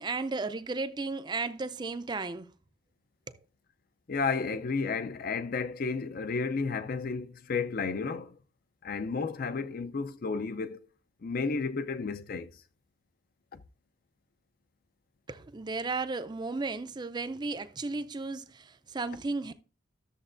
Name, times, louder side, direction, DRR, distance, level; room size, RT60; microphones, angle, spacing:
voice 1, 0.0-2.5 3.3-3.4 15.3-19.5, right 3 dB, 20° right, 0.4 m, -34 dB
voice 2, 4.1-8.4 8.8-10.8 11.2-12.5 13.5-13.6, left 4 dB, 45° left, 0.4 m, -32 dB
13.0 x 7.0 x 2.5 m
head